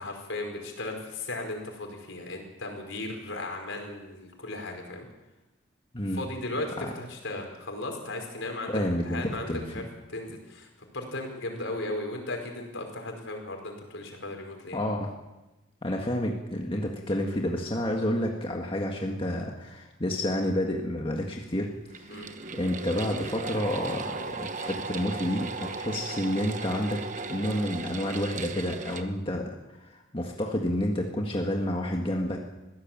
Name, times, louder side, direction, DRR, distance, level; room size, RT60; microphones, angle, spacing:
voice 1, 0.0-5.0 6.1-8.8 9.1-9.8 10.1-14.8 22.1-22.3, left 2 dB, 70° left, 3 dB, 4.9 m, -36 dB
voice 2, 8.7-9.2 9.5-9.8 14.7-15.1 15.8-21.7 22.0-22.2 22.5-27.0 27.3-29.5 29.8-32.4, left 1 dB, 25° left, 0 dB, 1.7 m, -29 dB
sound 1, 21.9-29.0, right 4 dB, 40° right, 1.1 m, -36 dB
22.0 x 16.0 x 7.5 m, 1.0 s
head